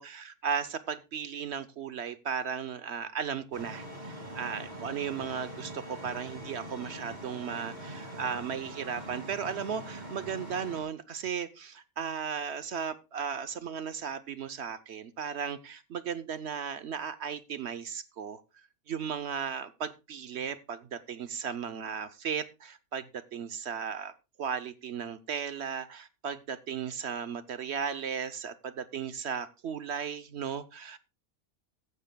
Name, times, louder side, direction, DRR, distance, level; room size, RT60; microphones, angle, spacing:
voice 1, 0.0-18.4 18.9-24.1 24.4-31.0, right 7 dB, 55° right, 14 dB, 0.9 m, -36 dB
sound 1, 3.5-10.8, right 1 dB, 30° right, 2.4 m, -43 dB
15.0 x 12.5 x 2.2 m, 0.27 s
omnidirectional pair, 1.5 m